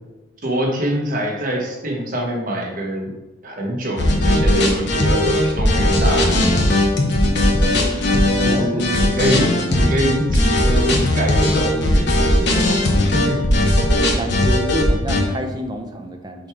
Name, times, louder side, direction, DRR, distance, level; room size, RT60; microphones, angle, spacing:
voice 1, 0.4-3.1 3.4-6.8 8.4-9.4 9.7-12.4 13.1-13.4, right 1 dB, 45° right, 0 dB, 1.2 m, -24 dB
sound 1, 4.0-15.2, left 1 dB, 65° left, 1.0 m, -17 dB
voice 2, 8.5-8.8 14.1-16.5, right 1 dB, 20° right, 4 dB, 0.6 m, -28 dB
6.3 x 3.5 x 4.8 m, 1.1 s
head